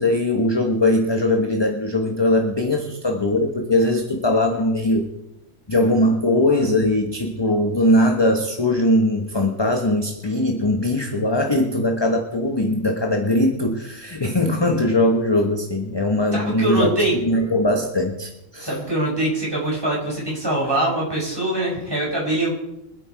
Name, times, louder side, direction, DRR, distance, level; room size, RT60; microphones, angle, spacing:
voice 1, 0.0-5.1 5.7-16.9 17.2-18.7, left 1 dB, 20° left, 4 dB, 1.1 m, -20 dB
voice 2, 16.3-17.1 18.6-22.5, right 1 dB, 15° right, -4 dB, 5.6 m, -23 dB
24.0 x 8.4 x 4.7 m, 0.89 s
omnidirectional pair, 1.4 m